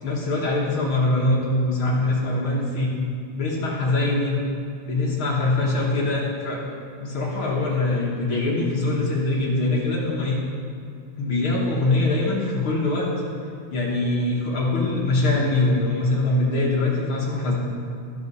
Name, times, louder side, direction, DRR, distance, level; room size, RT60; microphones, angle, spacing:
voice 1, 0.0-2.9 3.3-4.4 4.8-6.6 7.0-10.4 11.2-13.1 13.7-17.5, left 2 dB, 60° left, -3 dB, 1.5 m, -23 dB
13.0 x 5.4 x 5.4 m, 2.4 s
omnidirectional pair, 3.5 m